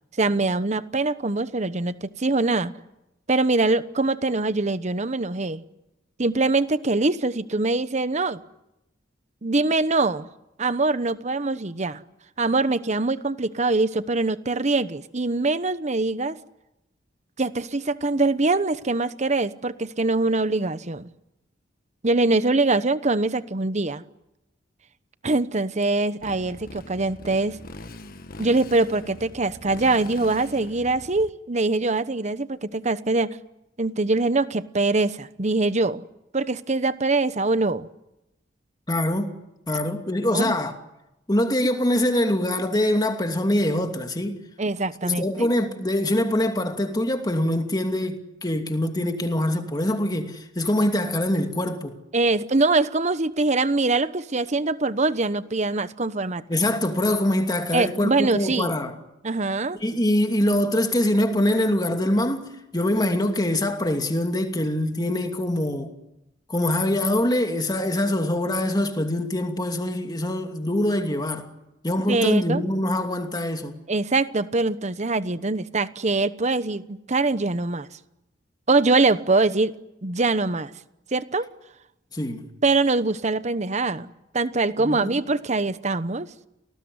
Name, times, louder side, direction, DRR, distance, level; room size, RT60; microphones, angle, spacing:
voice 1, 0.2-2.7 3.3-5.6 6.2-8.4 9.4-10.3 10.6-12.0 12.4-16.4 17.4-21.1 22.0-24.0 25.2-27.6 28.4-33.4 33.8-36.0 36.3-37.9 40.3-40.5 44.6-45.5 52.1-56.4 57.7-58.7 59.2-59.8 72.1-72.6 73.9-77.9 78.7-79.7 80.0-80.7 81.1-81.5 82.6-86.3, right 3 dB, 40° right, 1.0 m, -23 dB
Motorcycle, 26.2-31.3, left 2 dB, 50° left, 1.5 m, -42 dB
voice 2, 38.9-39.3 39.7-40.7 41.3-44.4 45.0-52.0 56.5-58.9 59.8-65.9 66.5-71.5 71.8-73.8 82.1-82.5 84.8-85.1, left 1 dB, 20° left, 2.7 m, -24 dB
29.5 x 19.5 x 9.7 m
head